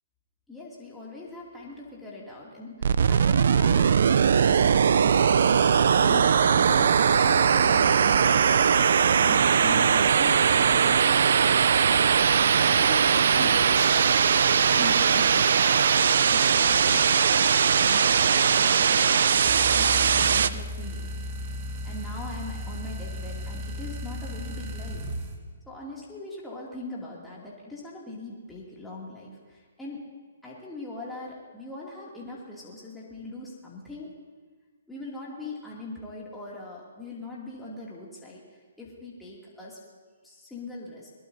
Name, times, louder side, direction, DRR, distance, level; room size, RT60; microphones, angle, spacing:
voice 1, 0.5-17.4 17.8-19.5 19.8-21.1 21.8-25.1 25.7-30.0 30.4-34.1 34.9-39.8 40.2-41.1, left 2 dB, 5° left, -6 dB, 2.6 m, -41 dB
sound 1, 2.8-20.5, right 7 dB, 65° right, 0.5 m, -20 dB
sound 2, 19.3-25.4, left 1 dB, 35° right, 1.7 m, -35 dB
21.5 x 21.0 x 2.8 m, 1.5 s
hypercardioid pair, 145°, 0 cm